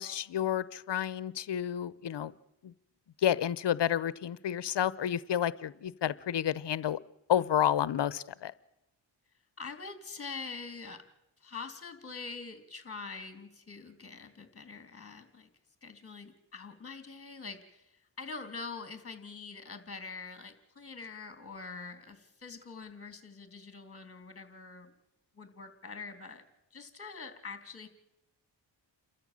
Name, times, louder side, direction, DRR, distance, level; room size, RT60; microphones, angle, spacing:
voice 1, 0.0-2.3 3.2-7.0 7.3-8.5, left 10 dB, 65° left, 18 dB, 0.8 m, -30 dB
voice 2, 9.6-11.0 11.4-15.5 15.8-24.9 25.3-26.4 26.7-27.9, left 4 dB, 30° left, 9 dB, 3.1 m, -44 dB
29.5 x 13.5 x 7.5 m, 0.89 s
cardioid pair, 60°, 45 cm